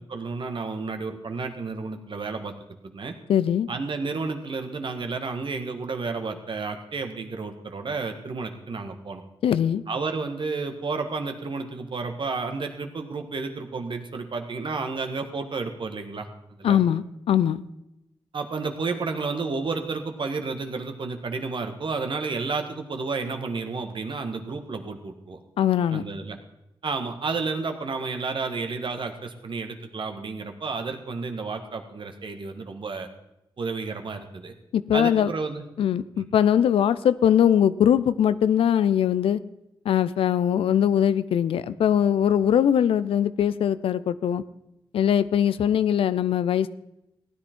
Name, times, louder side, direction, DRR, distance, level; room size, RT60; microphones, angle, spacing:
voice 1, 0.1-2.5 2.8-3.1 3.7-9.2 9.9-16.3 16.6-16.8 18.3-25.4 25.9-26.4 26.8-33.1 33.6-34.5 34.9-35.7 36.2-36.3, right 4 dB, 60° right, 5 dB, 1.6 m, -31 dB
voice 2, 3.3-3.7 9.4-9.8 16.6-17.6 25.6-26.0 34.7-35.3 35.8-39.4 39.9-44.4 44.9-46.7, left 9 dB, 85° left, 16 dB, 0.5 m, -21 dB
15.5 x 10.0 x 4.5 m, 0.87 s
cardioid pair, 45°, 9 cm